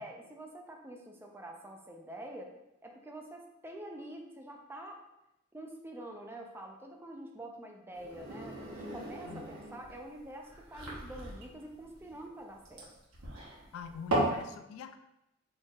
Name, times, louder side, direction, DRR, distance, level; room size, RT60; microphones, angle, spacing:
voice 1, 0.0-2.5 2.8-5.0 5.5-12.9, right 1 dB, 10° right, 2 dB, 0.4 m, -46 dB
sound 1, 7.9-14.4, right 1 dB, 85° right, 1.1 m, -37 dB
voice 2, 13.7-15.0, left 7 dB, 80° left, 8 dB, 0.3 m, -44 dB
4.2 x 3.2 x 2.4 m, 0.87 s
head